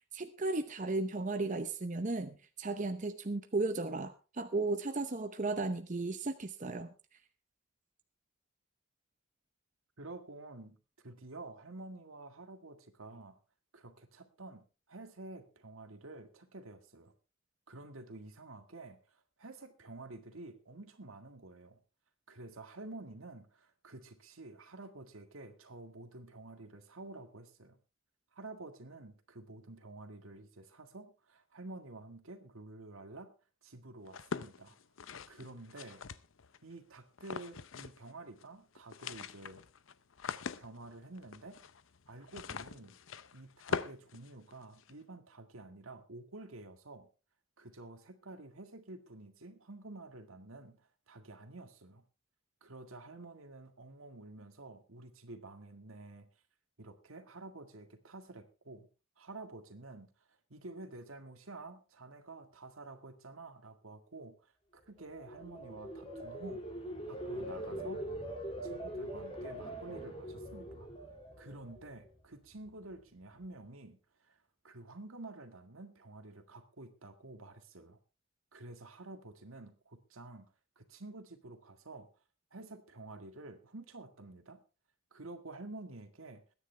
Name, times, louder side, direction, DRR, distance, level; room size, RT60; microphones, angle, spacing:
voice 1, 0.1-6.9, right 2 dB, 35° right, 8 dB, 0.8 m, -35 dB
voice 2, 10.0-13.4 13.7-17.1 17.7-21.8 22.3-27.8 28.3-33.3 33.6-34.8 35.3-36.0 36.6-39.6 40.6-41.6 42.1-43.0 43.3-47.1 47.6-52.0 52.6-56.3 56.8-58.9 59.2-66.8 67.1-68.1 68.6-70.9 71.4-78.0 78.5-80.5 80.8-82.1 82.5-84.6 85.1-86.4, right 2 dB, 80° right, 8 dB, 1.9 m, -50 dB
sound 1, 34.1-36.6 37.2-38.1 38.4-38.5 38.8-44.9, left 5 dB, 70° left, 0.7 m, -42 dB
sound 2, 65.0-72.1 72.5-72.9, right 1 dB, 30° left, 3.3 m, -42 dB
22.0 x 9.9 x 3.4 m, 0.32 s
head